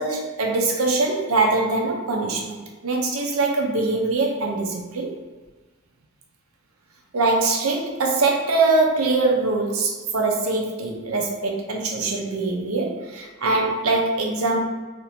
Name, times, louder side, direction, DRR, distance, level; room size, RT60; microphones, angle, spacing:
voice 1, 0.0-2.6 2.8-5.2 7.1-14.6, right 3 dB, 80° right, 1 dB, 0.7 m, -23 dB
2.8 x 2.6 x 4.2 m, 1.3 s
head